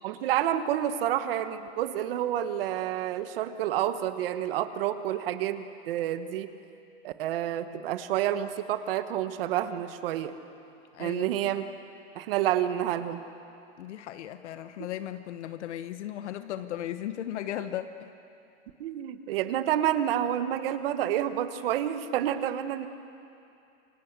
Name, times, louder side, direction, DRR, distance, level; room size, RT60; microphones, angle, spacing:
voice 1, 0.0-6.5 7.0-10.3 11.0-11.6 12.1-13.2 18.8-22.9, right 11 dB, 50° right, 10 dB, 1.5 m, -29 dB
voice 2, 10.9-11.4 13.8-18.1, left 11 dB, 70° left, 10 dB, 1.2 m, -36 dB
28.5 x 23.5 x 8.2 m, 2.7 s
supercardioid pair, 170°, 36 cm